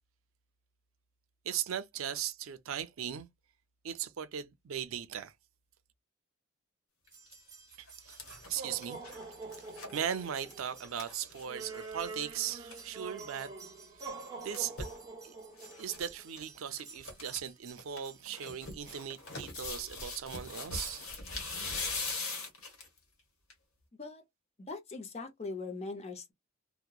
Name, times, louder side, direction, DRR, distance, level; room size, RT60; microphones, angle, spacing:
voice 1, 1.4-3.3 3.8-5.3 7.8-8.2 8.5-9.0 9.9-13.5 14.4-14.9 15.2-15.3 15.8-21.1, right 9 dB, 70° right, 0.4 m, -38 dB
sound 1, 7.1-7.3 7.7-12.0 12.3-12.4 12.5-12.8 14.1-15.0 15.6-16.1 16.3-16.4 16.8-17.4 17.8-23.0 23.5-23.6, left 3 dB, 80° left, 1.1 m, -41 dB
sound 2, 7.1-19.0, right 4 dB, 15° right, 0.7 m, -47 dB
voice 2, 24.7-26.3, left 3 dB, 30° left, 0.6 m, -41 dB
2.8 x 2.1 x 2.3 m
head